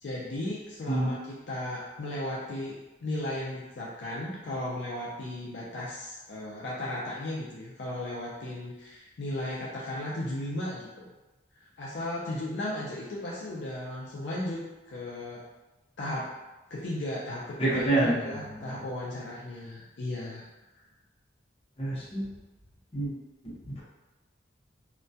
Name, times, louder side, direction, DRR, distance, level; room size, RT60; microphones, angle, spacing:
voice 1, 0.0-11.1 11.5-15.4 16.0-16.4 16.7-20.5, left 1 dB, 60° left, -5 dB, 0.4 m, -35 dB
voice 2, 17.6-18.8 21.8-22.2 22.9-23.1 23.4-23.8, right 2 dB, 30° left, -8 dB, 0.7 m, -28 dB
2.2 x 2.2 x 2.6 m, 1.1 s
head